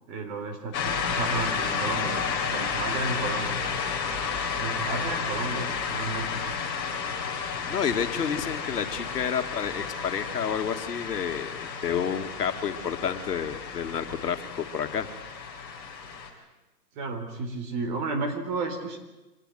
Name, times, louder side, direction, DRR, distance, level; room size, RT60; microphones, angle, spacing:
voice 1, 0.1-3.5 4.5-6.6 17.0-19.0, right 3 dB, 30° right, 5 dB, 3.9 m, -32 dB
sound 1, 0.7-16.3, left 6 dB, 20° left, 4.2 m, -32 dB
voice 2, 7.7-15.1, left 7 dB, 70° left, 7 dB, 2.7 m, -30 dB
25.0 x 18.5 x 9.5 m, 1.1 s
hypercardioid pair, 155°, 49 cm